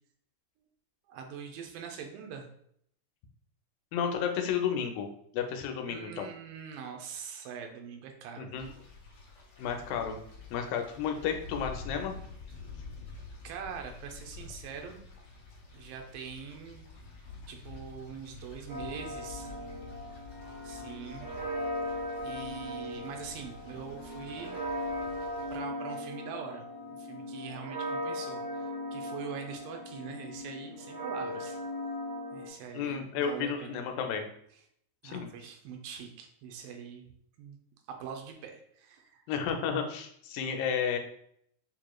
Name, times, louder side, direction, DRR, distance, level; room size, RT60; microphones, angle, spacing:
voice 1, 1.1-2.5 5.9-8.5 13.4-15.0 15.7-16.9 17.5-19.5 20.6-21.3 22.2-24.5 25.0-25.2 25.5-31.6 32.3-33.8 35.0-37.1 37.4-37.6 37.9-39.2, right 7 dB, 90° right, 3 dB, 2.4 m, -43 dB
voice 2, 3.9-5.1 5.3-6.3 8.4-8.7 9.6-10.2 10.5-12.2 32.7-34.3 35.0-35.3 39.3-41.0, left 7 dB, 90° left, 5 dB, 2.3 m, -32 dB
sound 1, 8.6-25.6, left 4 dB, 60° left, 1.4 m, -48 dB
sound 2, 18.7-32.5, left 1 dB, 65° right, 1.7 m, -38 dB
6.9 x 3.0 x 2.3 m, 0.69 s
omnidirectional pair, 3.9 m